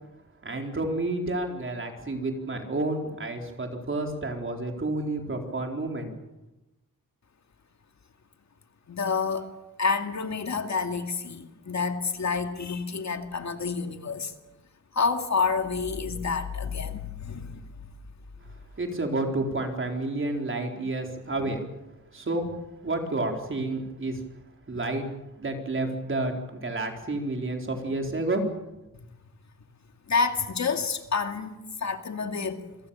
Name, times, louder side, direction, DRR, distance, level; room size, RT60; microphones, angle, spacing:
voice 1, 0.4-6.1 18.8-21.6 22.1-22.6 22.8-24.2 24.7-25.1 25.4-28.4, right 2 dB, 35° right, 3 dB, 4.3 m, -30 dB
voice 2, 8.9-9.5 9.8-14.3 14.9-17.7 29.0-29.1 30.1-32.6, left 5 dB, 55° left, 6 dB, 2.3 m, -29 dB
28.0 x 23.5 x 7.2 m, 0.98 s
wide cardioid pair, 150°, 34 cm